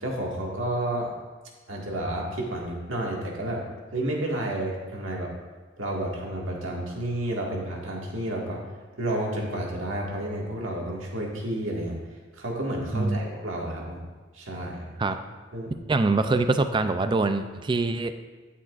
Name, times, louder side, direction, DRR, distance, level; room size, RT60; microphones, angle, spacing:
voice 1, 0.0-1.1 1.7-3.6 3.9-5.3 5.8-8.7 9.0-12.0 12.3-14.0 14.3-14.9 15.5-15.7, right 1 dB, 80° right, -2 dB, 1.8 m, -31 dB
voice 2, 15.9-18.1, right 3 dB, 25° right, 9 dB, 0.3 m, -24 dB
12.0 x 8.5 x 2.5 m, 1.3 s
head